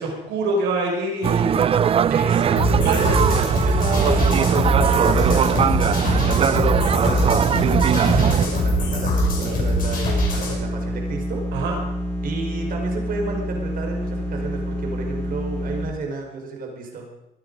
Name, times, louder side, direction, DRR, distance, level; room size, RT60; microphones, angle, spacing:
voice 1, 0.0-1.5 2.3-2.4 2.8-3.1 11.5-11.8, right 2 dB, 85° right, 0 dB, 5.6 m, -25 dB
sound 1, 1.2-8.5, right 8 dB, 35° right, 0.4 m, -20 dB
voice 2, 2.1-6.4 6.6-11.4 12.2-17.1, right 3 dB, 55° right, 2 dB, 4.4 m, -31 dB
sound 2, 2.6-10.6, left 1 dB, 55° left, 6.2 m, -23 dB
sound 3, 3.7-15.8, equal, 15° left, 4.8 m, -28 dB
23.0 x 9.7 x 5.2 m, 0.89 s
cardioid pair, 110°, 17 cm